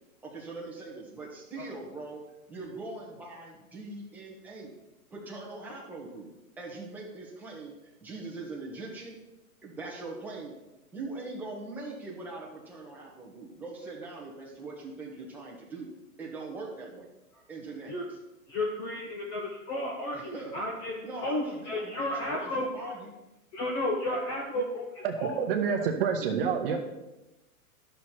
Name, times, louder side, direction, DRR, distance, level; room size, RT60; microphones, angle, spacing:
voice 1, 0.2-4.7 5.1-6.3 6.6-7.7 8.0-9.2 9.6-10.5 10.9-15.9 16.2-17.1 17.5-18.0 20.1-20.5 21.0-23.1 26.4-26.8, right 3 dB, 5° right, -4 dB, 1.3 m, -42 dB
voice 2, 18.5-20.9 21.2-23.0 23.5-25.4 25.8-25.9, left 1 dB, 15° left, -1 dB, 0.6 m, -33 dB
voice 3, 25.0-26.8, right 6 dB, 40° right, 5 dB, 1.0 m, -28 dB
12.0 x 6.5 x 4.4 m, 0.98 s
hypercardioid pair, 160°, 45 cm